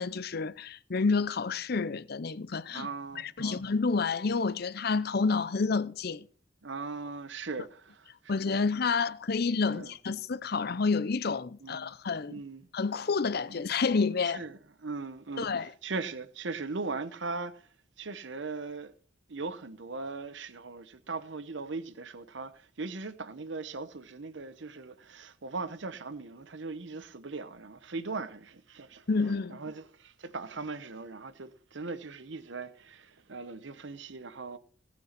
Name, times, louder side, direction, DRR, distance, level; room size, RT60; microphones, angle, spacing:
voice 1, 0.0-2.9 3.2-6.3 8.3-12.3 12.7-14.4 15.4-15.7 29.1-29.6, left 4 dB, 50° left, 0.6 m, -29 dB
voice 2, 2.7-3.6 6.6-8.6 9.7-9.9 11.6-11.9 12.3-12.6 13.5-13.6 14.2-18.9 19.3-34.6, right 3 dB, 65° right, 0.9 m, -39 dB
18.0 x 6.2 x 5.9 m
head